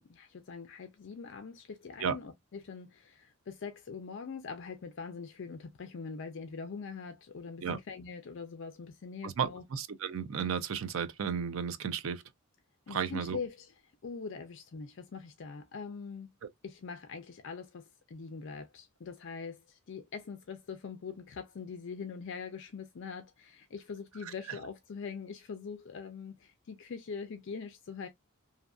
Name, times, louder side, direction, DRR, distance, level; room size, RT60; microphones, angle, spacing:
voice 1, 0.0-9.6 12.9-16.3 16.6-28.1, left 5 dB, 55° left, 0.4 m, -43 dB
voice 2, 9.2-12.2 12.9-13.4 24.3-24.4, right 7 dB, 65° right, 0.4 m, -33 dB
2.8 x 2.5 x 2.3 m
head